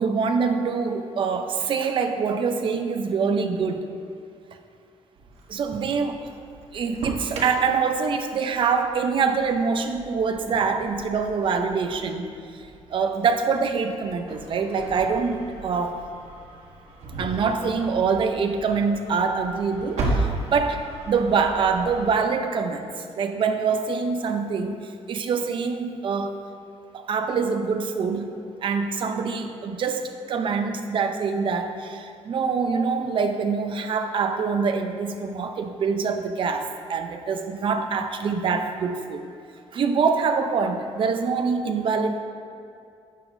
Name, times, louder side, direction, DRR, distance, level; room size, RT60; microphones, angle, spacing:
voice 1, 0.0-3.8 5.5-6.2 6.7-16.0 17.2-20.8 21.1-26.4 26.9-28.3 28.6-39.2 39.7-42.2, right 5 dB, 50° right, 6 dB, 0.6 m, -25 dB
Engine starting, 5.2-22.1, right 2 dB, 75° right, 1.3 m, -36 dB
11.5 x 7.8 x 2.6 m, 2.5 s
cardioid pair, 160°, 11 cm